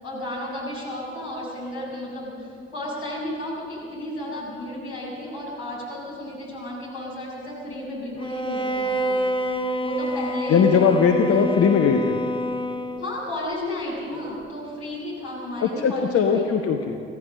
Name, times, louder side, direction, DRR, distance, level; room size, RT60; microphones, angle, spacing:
voice 1, 0.0-9.2 9.8-11.0 11.3-11.7 13.0-16.5, left 1 dB, 75° left, -6 dB, 6.9 m, -33 dB
Bowed string instrument, 8.2-13.3, equal, 15° left, 1.4 m, -27 dB
voice 2, 10.5-12.2 15.6-17.0, left 6 dB, 45° left, 3 dB, 1.2 m, -19 dB
25.0 x 16.0 x 6.6 m, 2.5 s
figure-of-eight pair, 45°, 31 cm